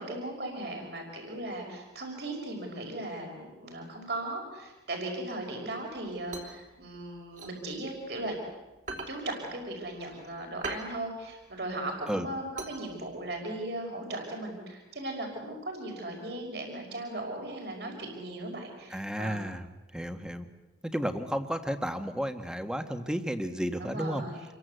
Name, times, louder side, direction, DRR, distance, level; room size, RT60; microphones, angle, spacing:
voice 1, 0.0-8.4 9.1-19.4 23.8-24.4, right 1 dB, 60° right, 2 dB, 5.7 m, -37 dB
sound 1, 5.9-8.4 8.7-13.4, right 2 dB, 45° right, 3.4 m, -42 dB
voice 2, 18.9-20.5 20.8-24.2, equal, 5° right, 7 dB, 1.6 m, -33 dB
28.0 x 23.0 x 8.1 m, 1.1 s
head